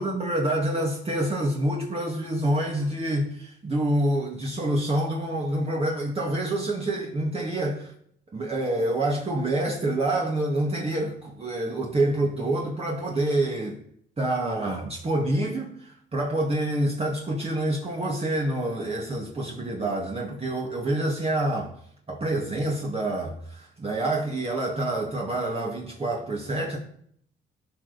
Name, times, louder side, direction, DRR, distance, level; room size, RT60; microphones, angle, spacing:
voice 1, 0.0-7.9 8.3-13.8 14.2-21.7 22.1-26.8, right 1 dB, 30° right, 2.0 m, -27 dB
15.0 x 5.3 x 4.1 m
cardioid pair, 90°, 20 cm